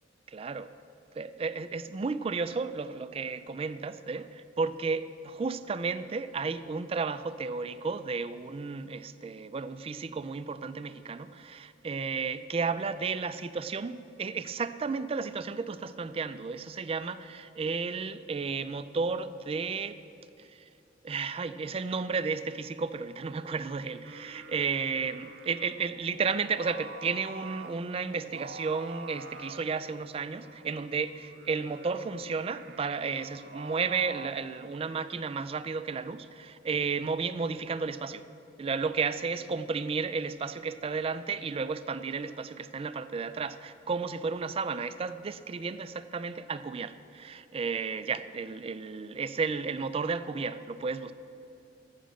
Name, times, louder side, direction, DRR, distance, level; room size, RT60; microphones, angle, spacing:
voice 1, 0.3-0.7 1.2-20.0 20.4-20.6 21.0-38.2 38.6-51.1, right 4 dB, 30° right, 12 dB, 0.4 m, -33 dB
Singing, 23.9-34.3, right 3 dB, 60° right, 0.7 m, -47 dB
12.5 x 9.2 x 6.3 m, 2.8 s
head